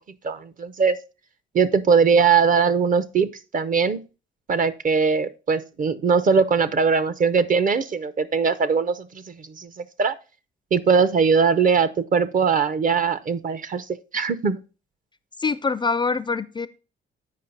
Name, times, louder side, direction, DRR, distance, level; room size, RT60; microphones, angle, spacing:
voice 1, 0.2-1.0 1.5-4.0 4.5-10.1 10.7-13.9 14.1-14.6, right 5 dB, 40° right, 0.7 m, -21 dB
voice 2, 15.4-16.7, left 4 dB, 25° left, 0.4 m, -24 dB
8.5 x 5.0 x 3.9 m
cardioid pair, 90°, 20 cm